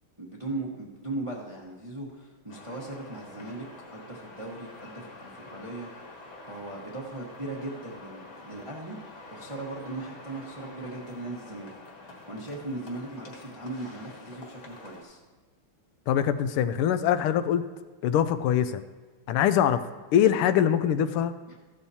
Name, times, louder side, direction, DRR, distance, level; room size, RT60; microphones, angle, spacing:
voice 1, 0.2-3.6 3.9-5.9 6.5-11.7 12.3-15.2 21.5-21.6, right 2 dB, 20° right, -2 dB, 0.8 m, -38 dB
sound 1, 2.5-15.0, left 2 dB, 50° left, 2.2 m, -47 dB
voice 2, 16.1-17.6 18.0-18.8 19.3-19.8 20.1-21.3, left 9 dB, 85° left, 11 dB, 1.5 m, -23 dB
14.5 x 11.5 x 2.8 m, 1.3 s
omnidirectional pair, 2.4 m